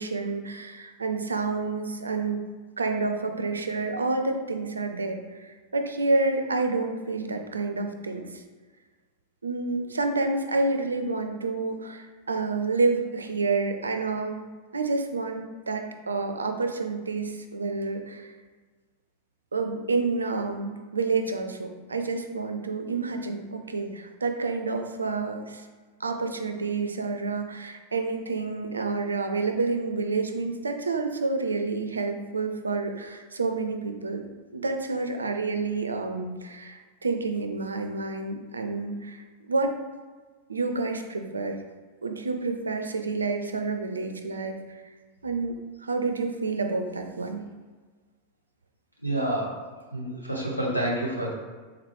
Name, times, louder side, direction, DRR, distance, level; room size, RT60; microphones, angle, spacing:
voice 1, 0.0-2.4 2.8-8.4 9.4-14.4 14.7-18.3 19.5-25.7 26.0-34.2 34.5-39.7 40.5-41.6 42.0-44.8 45.2-45.6 45.8-47.4, right 3 dB, 75° right, 5 dB, 0.4 m, -29 dB
voice 2, 49.0-49.5 49.9-51.3, right 1 dB, 90° left, -3 dB, 0.8 m, -28 dB
3.7 x 3.1 x 3.1 m, 1.4 s
figure-of-eight pair, 90°, 0 cm